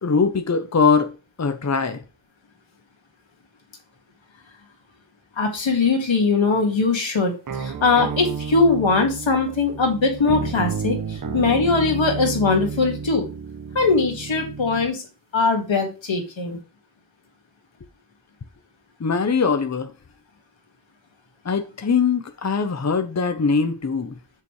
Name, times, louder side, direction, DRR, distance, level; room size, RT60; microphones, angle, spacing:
voice 1, 0.0-1.1 1.4-2.0 19.0-19.9 21.4-24.2, left 5 dB, 35° left, 0.9 m, -21 dB
voice 2, 5.4-7.3 7.6-13.3 13.7-15.0 15.3-16.6, left 4 dB, 90° left, 2.0 m, -21 dB
sound 1, 7.5-14.9, right 5 dB, 45° right, 0.7 m, -31 dB
7.0 x 6.8 x 3.2 m
wide cardioid pair, 55°, 45 cm